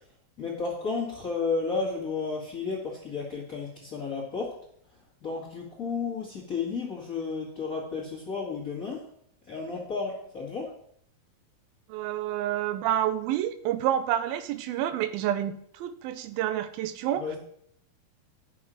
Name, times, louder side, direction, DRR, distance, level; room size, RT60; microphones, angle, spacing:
voice 1, 0.4-4.6 5.2-9.1 9.5-10.7 17.1-17.4, left 4 dB, 30° left, -2 dB, 1.7 m, -32 dB
voice 2, 11.9-17.4, right 11 dB, 80° right, 12 dB, 2.4 m, -29 dB
10.0 x 6.2 x 6.3 m, 0.67 s
omnidirectional pair, 4.3 m